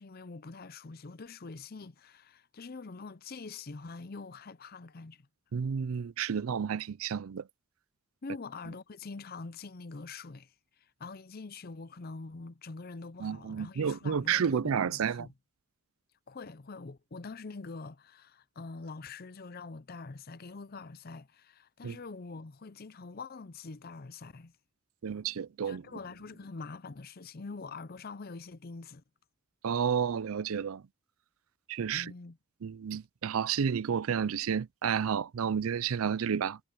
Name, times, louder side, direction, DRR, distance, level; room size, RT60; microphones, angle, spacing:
voice 1, 0.0-5.3 8.2-10.5 10.8-15.3 16.3-24.5 25.6-29.0 31.9-32.4, left 4 dB, 45° left, 0.6 m, -44 dB
voice 2, 5.5-7.4 13.2-15.3 21.8-22.0 25.0-25.8 29.6-30.8 31.7-32.1 32.6-36.6, right 7 dB, 70° right, 0.4 m, -31 dB
head